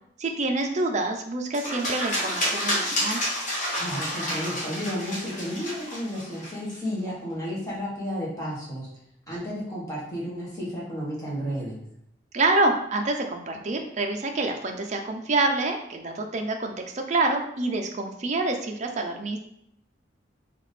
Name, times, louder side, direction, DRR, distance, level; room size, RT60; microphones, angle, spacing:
voice 1, 0.2-3.2 12.3-19.4, right 2 dB, 40° right, 3 dB, 0.5 m, -27 dB
Fish swimming away, 1.5-6.7, left 1 dB, 45° left, 1.2 m, -29 dB
voice 2, 3.7-8.9 9.3-11.8, equal, 20° left, -7 dB, 1.4 m, -32 dB
3.5 x 2.8 x 4.1 m, 0.73 s
head